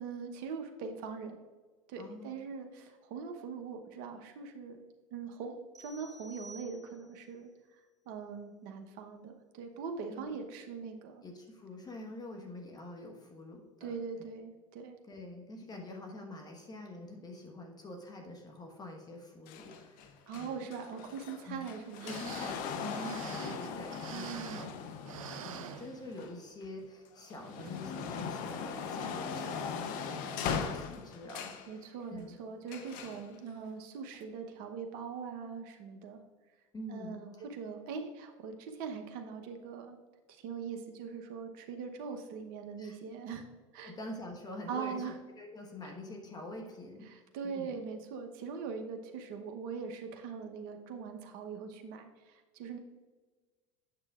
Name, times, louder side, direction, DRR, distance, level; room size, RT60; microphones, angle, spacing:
voice 1, 0.0-1.4 1.9-4.8 5.1-7.5 8.1-11.2 13.8-15.0 20.3-22.3 24.1-24.7 31.7-36.2 36.9-40.0 40.3-43.5 43.7-43.9 44.7-45.2 45.8-45.9 47.1-52.8, right 5 dB, 60° right, 5 dB, 0.9 m, -42 dB
voice 2, 2.0-2.4 10.1-10.4 11.2-14.3 15.1-20.7 21.5-21.6 22.1-24.4 25.2-32.3 36.7-37.3 42.8-43.0 43.8-47.7, left 1 dB, 25° left, 2 dB, 1.2 m, -46 dB
sound 1, 5.7-7.3, equal, 20° right, 1.6 m, -53 dB
sound 2, 19.5-26.7 27.1-31.7 32.7-33.2 34.1-34.2, left 6 dB, 55° left, 0.8 m, -39 dB
sound 3, 21.7-21.8 22.0-24.8 25.0-26.4 26.8-26.9 27.6-27.8 28.3-28.4, right 10 dB, 85° right, 0.5 m, -47 dB
8.7 x 6.6 x 2.4 m, 1.3 s
hypercardioid pair, 95°, 17 cm